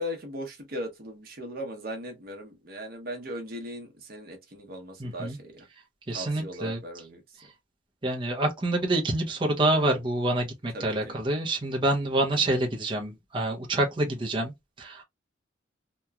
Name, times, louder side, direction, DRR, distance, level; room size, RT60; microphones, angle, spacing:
voice 1, 0.0-5.5 6.1-7.2 10.7-11.1, equal, 50° right, 0.9 m, -38 dB
voice 2, 5.0-5.4 6.1-6.8 8.0-14.5 14.8-15.0, right 2 dB, 25° right, 0.6 m, -27 dB
2.9 x 2.2 x 2.3 m
head